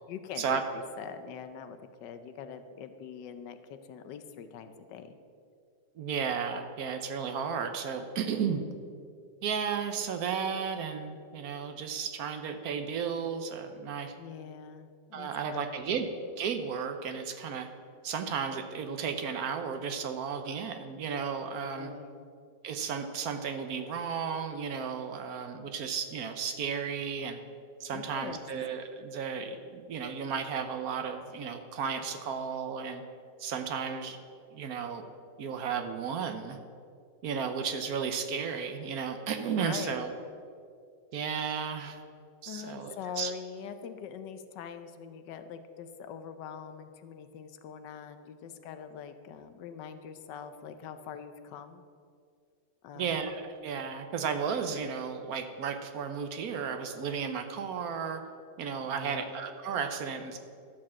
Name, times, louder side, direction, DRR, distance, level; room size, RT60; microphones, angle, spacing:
voice 1, 0.1-5.1 14.2-16.0 21.7-22.3 27.9-28.5 39.6-40.0 42.5-51.8 52.8-53.2 58.8-59.4, left 7 dB, 85° left, 9 dB, 1.3 m, -43 dB
voice 2, 6.0-8.6 9.4-14.1 15.1-16.1 16.4-17.7 18.0-21.9 22.6-27.4 27.8-33.0 33.4-34.2 34.5-35.0 35.4-36.6 37.2-40.1 41.1-42.0 42.4-43.3 52.9-58.2 58.6-60.4, right 6 dB, 65° right, 7 dB, 1.1 m, -34 dB
13.0 x 4.6 x 7.3 m, 2.3 s
omnidirectional pair, 1.9 m